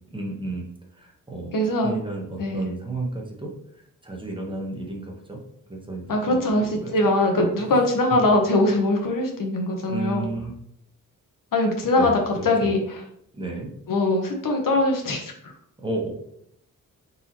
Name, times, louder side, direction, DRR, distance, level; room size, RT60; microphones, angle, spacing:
voice 1, 0.1-1.6 1.8-5.4 5.7-6.9 7.7-7.8 9.9-10.5 11.9-12.7 13.3-13.7 15.8-16.1, right 2 dB, 15° right, 0 dB, 0.8 m, -33 dB
voice 2, 1.5-1.9 2.4-2.7 6.1-10.3 11.5-12.8 13.9-15.5, left 2 dB, 75° left, 2 dB, 0.9 m, -22 dB
4.3 x 4.0 x 2.8 m, 0.71 s
wide cardioid pair, 170°, 33 cm